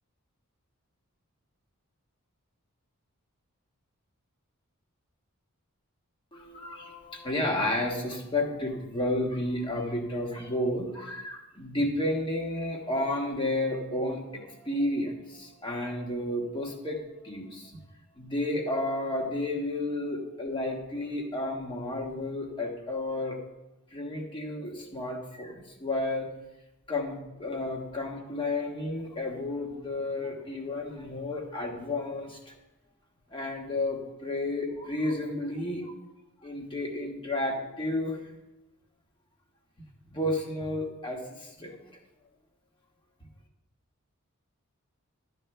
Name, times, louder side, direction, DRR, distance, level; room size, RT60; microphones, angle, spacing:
voice 1, 6.3-17.7 18.2-23.4 23.9-26.3 26.9-32.5 33.3-35.9 36.4-38.2 40.1-41.8, left 1 dB, 20° left, 0 dB, 1.6 m, -32 dB
13.0 x 9.3 x 3.4 m, 0.97 s
head